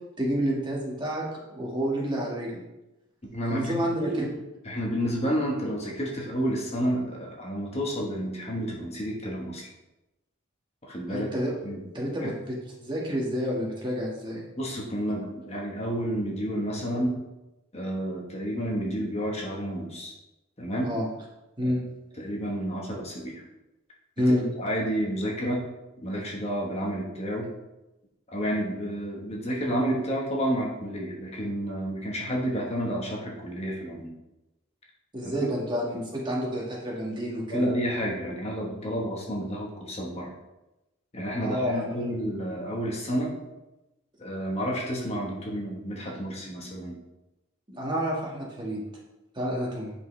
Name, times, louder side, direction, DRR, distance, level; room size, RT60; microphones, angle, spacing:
voice 1, 0.2-1.2 1.5-2.6 3.5-4.3 11.1-11.6 11.9-14.5 20.8-21.1 21.6-21.8 24.2-24.5 35.1-37.6 41.4-41.9 47.7-48.8 49.3-49.9, equal, 25° right, -4 dB, 1.7 m, -29 dB
voice 2, 3.3-4.3 4.6-9.7 10.8-11.3 11.6-11.8 12.2-12.3 14.6-17.2 17.7-20.1 20.6-20.9 21.6-21.8 22.2-23.4 24.3-25.7 26.0-27.5 28.3-34.1 35.2-35.5 37.5-40.3 41.1-43.3 44.2-47.0, equal, 30° left, -2 dB, 1.3 m, -30 dB
8.5 x 5.3 x 3.3 m, 0.97 s
head